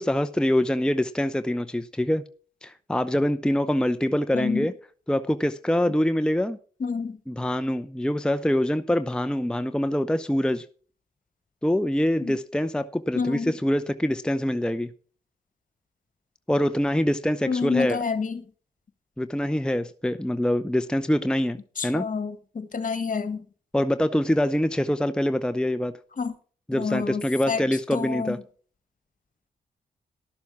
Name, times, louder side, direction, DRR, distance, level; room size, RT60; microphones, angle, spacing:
voice 1, 0.0-2.3 2.6-4.7 5.1-6.6 7.3-10.6 11.6-14.9 16.5-18.0 19.2-21.6 21.8-22.0 23.7-25.9 26.7-28.4, left 1 dB, 5° left, 0.7 m, -24 dB
voice 2, 4.3-4.7 5.9-6.0 6.8-7.2 12.2-12.4 13.2-13.6 17.5-18.4 21.8-23.4 26.2-26.3 26.7-27.6 27.9-28.4, left 5 dB, 50° left, 1.7 m, -28 dB
12.0 x 7.0 x 6.1 m
supercardioid pair, 50°, 17 cm